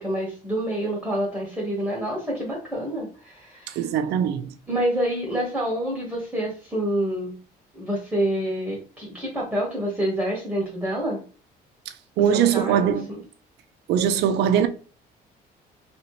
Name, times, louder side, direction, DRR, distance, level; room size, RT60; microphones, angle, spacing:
voice 1, 0.0-3.9 4.7-7.3 7.7-11.2 12.3-13.2, right 1 dB, 5° right, 1.2 m, -27 dB
voice 2, 3.7-4.5 12.2-13.1 13.9-14.7, right 9 dB, 80° right, 0.5 m, -21 dB
2.9 x 2.9 x 3.1 m
cardioid pair, 110°, 17 cm